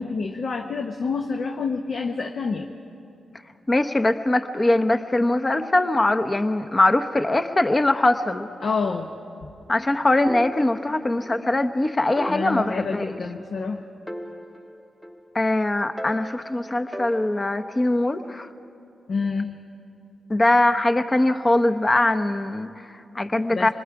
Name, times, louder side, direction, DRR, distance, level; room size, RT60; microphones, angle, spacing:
voice 1, 0.0-2.7 8.6-9.1 12.3-13.8 19.1-19.6 23.5-23.7, left 4 dB, 65° left, 3 dB, 0.9 m, -28 dB
voice 2, 3.7-8.5 9.7-13.0 15.3-18.5 20.3-23.7, left 2 dB, 30° left, 9 dB, 0.9 m, -22 dB
sound 1, 10.3-11.4 11.7-11.8 12.2-13.7 14.1-15.5 16.0-17.8, equal, 5° left, 0.9 m, -38 dB
26.0 x 20.5 x 4.8 m, 2.6 s
supercardioid pair, 50°, 0 cm